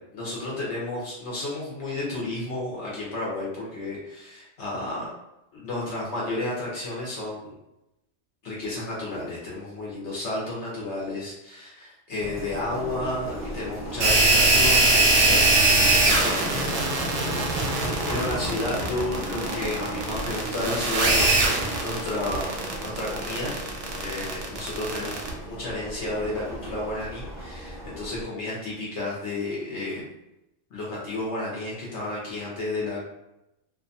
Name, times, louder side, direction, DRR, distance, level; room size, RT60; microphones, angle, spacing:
voice 1, 0.1-5.1 5.5-7.5 8.4-22.6 22.8-23.6 24.0-25.2 25.5-30.1 30.7-33.0, left 2 dB, 70° left, -5 dB, 1.0 m, -32 dB
sound 1, 12.2-28.2, equal, 45° left, 0.9 m, -35 dB
sound 2, 14.0-25.3, right 2 dB, 75° right, 0.9 m, -22 dB
2.6 x 2.3 x 2.5 m, 0.88 s
omnidirectional pair, 1.2 m